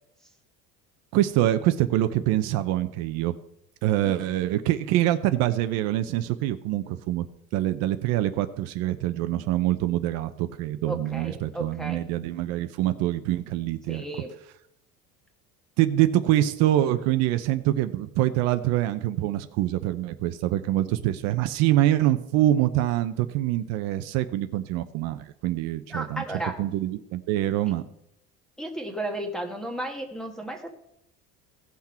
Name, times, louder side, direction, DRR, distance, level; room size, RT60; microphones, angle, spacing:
voice 1, 1.1-3.3 3.8-7.3 7.5-14.0 15.8-26.2 26.6-27.8, right 14 dB, 65° right, 10 dB, 0.7 m, -25 dB
voice 2, 10.8-12.0 13.9-14.3 25.9-26.6 28.6-30.7, right 1 dB, ahead, 4 dB, 1.3 m, -34 dB
16.5 x 6.0 x 4.4 m, 0.78 s
cardioid pair, 155°, 29 cm